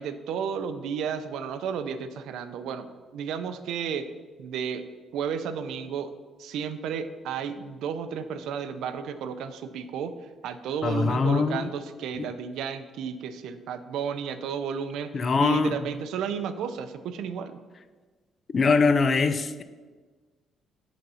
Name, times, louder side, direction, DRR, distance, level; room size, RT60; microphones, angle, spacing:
voice 1, 0.0-4.1 4.4-4.8 5.1-6.1 6.4-17.6, right 7 dB, 80° right, 11 dB, 0.5 m, -33 dB
voice 2, 10.8-11.7 12.2-12.3 15.1-15.7 18.5-19.6, left 4 dB, 35° left, 12 dB, 0.4 m, -23 dB
8.0 x 4.0 x 5.5 m, 1.4 s
cardioid pair, 150°, 0 cm